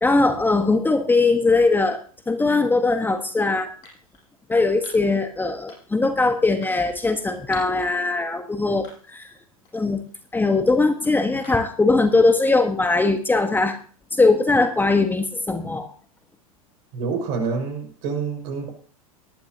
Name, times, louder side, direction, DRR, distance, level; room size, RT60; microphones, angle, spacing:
voice 1, 0.0-2.0 2.3-3.7 4.5-9.3 9.7-10.0 10.3-13.8 14.1-15.9, left 3 dB, 10° left, 7 dB, 1.3 m, -20 dB
sound 1, 1.2-1.4 2.5-2.8 3.8-4.3 4.8-5.2 5.7-6.0 6.6-7.9 8.3-8.4 8.8-9.3 9.7-11.9, left 3 dB, 45° left, 6.3 m, -48 dB
voice 2, 16.9-18.7, right 5 dB, 55° right, 4 dB, 5.6 m, -27 dB
19.0 x 12.0 x 2.9 m, 0.42 s
figure-of-eight pair, 85°, 19 cm